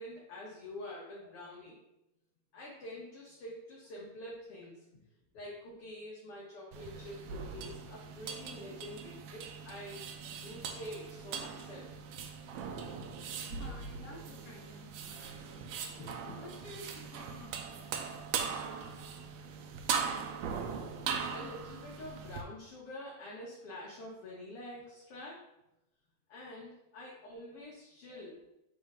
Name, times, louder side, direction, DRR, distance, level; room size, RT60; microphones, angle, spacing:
voice 1, 0.0-1.8 2.5-4.9 5.3-11.9 16.0-16.4 21.3-25.4 26.3-28.4, left 1 dB, 60° left, -4 dB, 1.8 m, -47 dB
sound 1, 6.7-22.4, right 6 dB, 80° right, 1.8 m, -40 dB
voice 2, 13.4-15.6 16.4-17.9 28.1-28.2, left 1 dB, 35° left, -4 dB, 1.9 m, -51 dB
7.7 x 4.4 x 3.6 m, 0.91 s
omnidirectional pair, 3.4 m